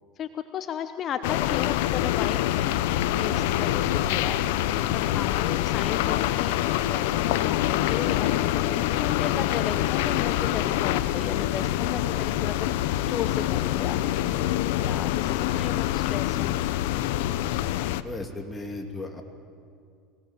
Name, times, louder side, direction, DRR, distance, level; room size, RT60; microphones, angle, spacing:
voice 1, 0.2-4.4 4.9-6.6 6.9-12.7 13.0-14.4 14.7-16.8, left 8 dB, 40° left, 10 dB, 0.9 m, -35 dB
sound 1, 1.2-18.0, left 13 dB, 80° left, 0.7 m, -25 dB
voice 2, 18.0-19.2, left 2 dB, 15° left, 3 dB, 2.5 m, -37 dB
24.0 x 18.0 x 7.3 m, 2.3 s
supercardioid pair, 105°, 0 cm